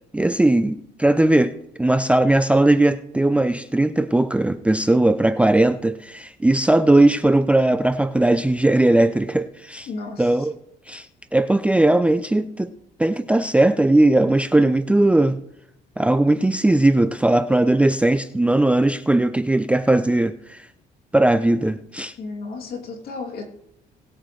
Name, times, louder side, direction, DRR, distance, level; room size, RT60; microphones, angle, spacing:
voice 1, 0.1-9.9 10.2-10.5 10.9-11.1 11.3-12.7 13.0-15.4 16.0-20.6 21.1-22.1, right 2 dB, 5° right, 0.5 m, -18 dB
voice 2, 9.9-10.5 22.2-23.5, left 3 dB, 65° left, 2.8 m, -33 dB
19.0 x 8.6 x 3.2 m
cardioid pair, 110°, 17 cm